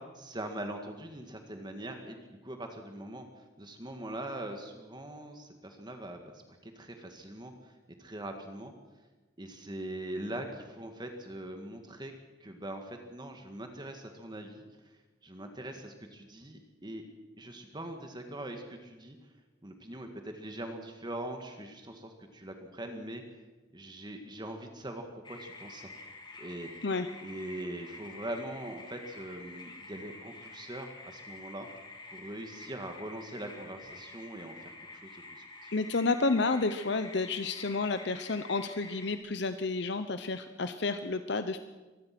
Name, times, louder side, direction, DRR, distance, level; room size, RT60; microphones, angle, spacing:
voice 1, 0.0-7.7 8.0-8.7 9.4-12.1 12.4-17.0 17.4-19.2 19.6-23.2 23.7-25.9 26.4-26.7 27.2-31.7 32.1-35.7, right 1 dB, 25° right, 4 dB, 2.0 m, -42 dB
sound 1, 25.2-39.2, left 2 dB, 25° left, 3.5 m, -49 dB
voice 2, 35.7-41.6, left 3 dB, 65° left, 10 dB, 0.9 m, -30 dB
25.0 x 20.0 x 6.1 m, 1.2 s
head